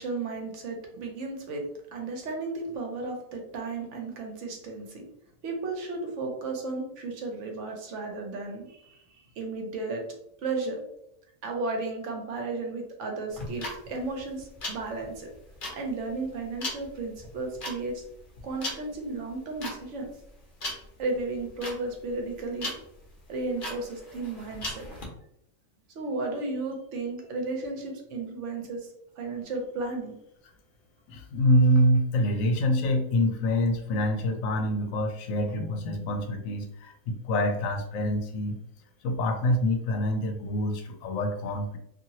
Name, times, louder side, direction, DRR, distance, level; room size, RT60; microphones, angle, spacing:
voice 1, 0.0-1.6 1.9-5.1 5.4-9.0 9.4-10.0 10.4-10.8 11.4-15.3 15.7-18.0 18.4-20.1 21.0-22.7 23.3-24.9 25.9-28.9 29.2-30.2, right 3 dB, 65° right, 2 dB, 1.0 m, -34 dB
sound 1, 13.3-25.1, left 1 dB, 45° left, 0.8 m, -38 dB
voice 2, 31.1-38.6 39.0-41.8, equal, 80° left, 5 dB, 1.0 m, -26 dB
2.8 x 2.6 x 2.8 m, 0.77 s
omnidirectional pair, 1.4 m